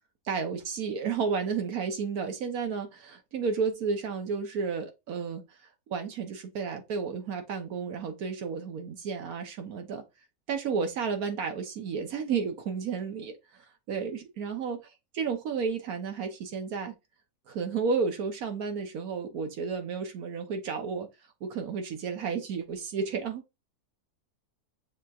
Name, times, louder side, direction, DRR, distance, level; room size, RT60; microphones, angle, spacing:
voice 1, 0.3-5.4 5.9-10.0 10.5-14.8 15.1-16.9 17.5-21.1 21.4-23.4, right 5 dB, 70° right, 1.3 m, -32 dB
6.8 x 2.9 x 2.4 m
omnidirectional pair, 1.6 m